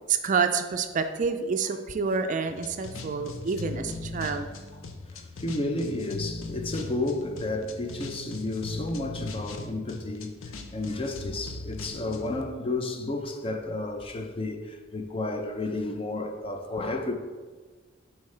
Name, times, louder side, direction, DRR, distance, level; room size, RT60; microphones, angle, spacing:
voice 1, 0.1-4.5, right 5 dB, 40° right, 0.4 m, -28 dB
sound 1, 2.5-12.4, left 2 dB, 85° left, 0.6 m, -39 dB
voice 2, 5.4-10.4 10.7-17.1, left 2 dB, 30° left, 0.5 m, -32 dB
6.9 x 4.6 x 3.2 m
head